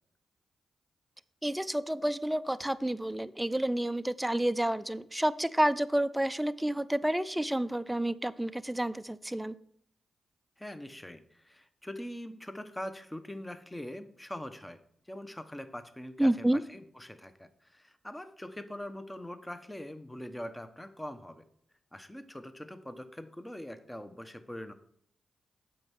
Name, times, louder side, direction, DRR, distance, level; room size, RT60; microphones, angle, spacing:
voice 1, 1.4-9.5 16.2-16.6, right 1 dB, 10° right, 12 dB, 0.5 m, -29 dB
voice 2, 10.6-14.8 15.1-21.4 21.9-24.7, left 1 dB, 15° left, 10 dB, 1.0 m, -43 dB
7.6 x 5.5 x 6.1 m, 0.66 s
supercardioid pair, 45°, 0 cm